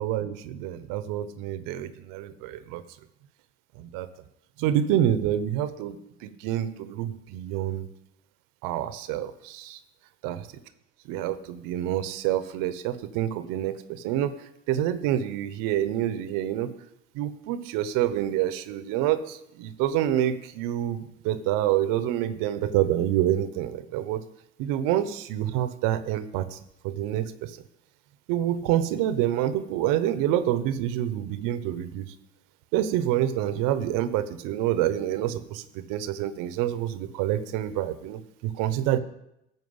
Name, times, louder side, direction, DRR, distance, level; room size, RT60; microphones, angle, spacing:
voice 1, 0.0-2.8 3.8-4.1 4.6-7.9 8.6-9.8 10.2-10.4 11.0-14.3 14.7-16.7 17.1-24.2 24.6-26.6 26.8-27.6 28.3-32.0 32.7-39.0, right 12 dB, 70° right, 13 dB, 0.9 m, -27 dB
13.5 x 4.6 x 7.9 m, 0.84 s
hypercardioid pair, 75°, 34 cm